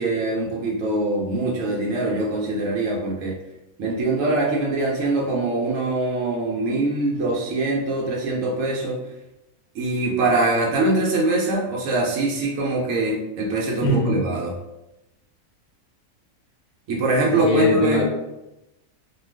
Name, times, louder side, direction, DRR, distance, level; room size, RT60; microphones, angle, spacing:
voice 1, 0.0-3.4 3.8-9.0 9.7-14.6 16.9-18.1, right 2 dB, 70° right, -3 dB, 0.9 m, -23 dB
voice 2, 13.8-14.2 17.3-18.1, left 2 dB, 85° left, -2 dB, 1.1 m, -21 dB
2.4 x 2.3 x 3.2 m, 0.93 s
omnidirectional pair, 1.6 m